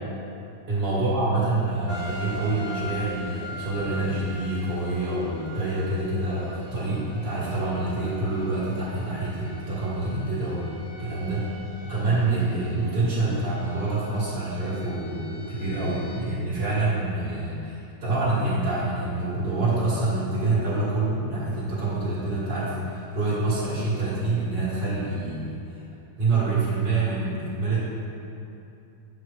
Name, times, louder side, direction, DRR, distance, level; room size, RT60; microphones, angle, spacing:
voice 1, 0.7-10.7 11.0-11.5 11.8-25.6 26.2-27.8, right 2 dB, 80° right, -12 dB, 2.3 m, -26 dB
sound 1, 1.9-16.2, left 1 dB, 30° left, 0.9 m, -42 dB
7.0 x 5.6 x 3.3 m, 2.7 s
omnidirectional pair, 1.9 m